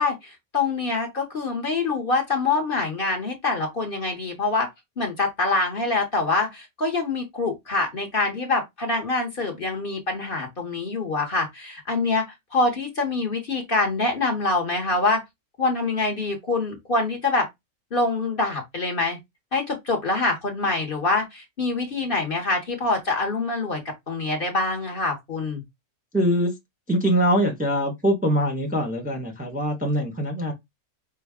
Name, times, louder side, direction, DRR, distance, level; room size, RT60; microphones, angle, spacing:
voice 1, 0.0-4.7 5.0-12.2 12.5-15.2 15.6-17.5 17.9-19.2 19.5-23.8 24.1-25.6, left 3 dB, 40° left, 1.1 m, -25 dB
voice 2, 26.1-26.5 26.9-30.5, equal, 5° right, 0.8 m, -23 dB
5.5 x 2.2 x 3.5 m
omnidirectional pair, 1.5 m